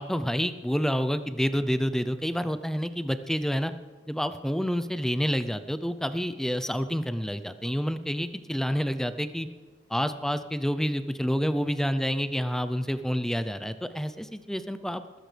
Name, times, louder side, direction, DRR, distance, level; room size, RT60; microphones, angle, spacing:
voice 1, 0.0-3.7 4.1-9.5 9.9-15.2, equal, 5° left, 11 dB, 0.6 m, -28 dB
19.5 x 15.0 x 3.4 m, 1.4 s
head